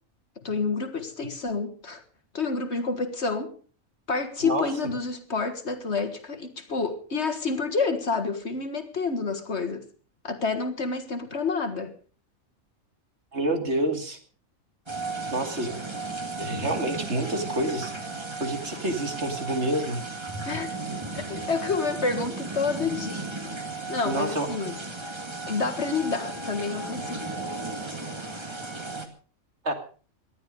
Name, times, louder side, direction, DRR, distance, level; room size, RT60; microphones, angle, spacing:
voice 1, 0.4-2.0 2.3-3.5 4.1-9.9 10.2-11.9 20.5-20.7 21.1-23.3 23.9-24.8 25.5-27.2, left 4 dB, 50° left, 1.9 m, -29 dB
voice 2, 13.3-14.2 15.3-15.8 16.4-17.9 18.4-20.1 24.0-24.5 29.6-29.7, right 1 dB, 50° right, 2.6 m, -28 dB
sound 1, 14.9-29.1, right 3 dB, 20° right, 2.0 m, -35 dB
19.0 x 12.0 x 5.2 m
omnidirectional pair, 1.5 m